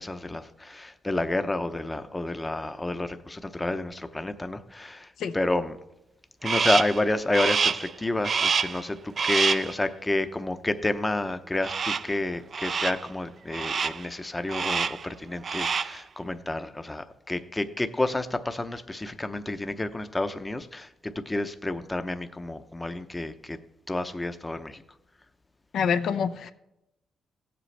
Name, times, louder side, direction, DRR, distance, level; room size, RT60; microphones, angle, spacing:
voice 1, 0.0-5.8 6.4-23.6 23.9-24.8, left 2 dB, 15° left, 9 dB, 0.7 m, -30 dB
Crow, 6.4-7.0 7.3-7.9 8.2-8.8 9.2-9.7 11.6-12.2 12.5-13.1 13.5-14.1 14.5-15.1 15.4-16.0, right 5 dB, 50° right, 0.3 m, -27 dB
voice 2, 25.7-26.5, left 6 dB, 80° left, 9 dB, 0.5 m, -26 dB
16.0 x 7.7 x 3.3 m, 0.89 s
cardioid pair, 80°, 0 cm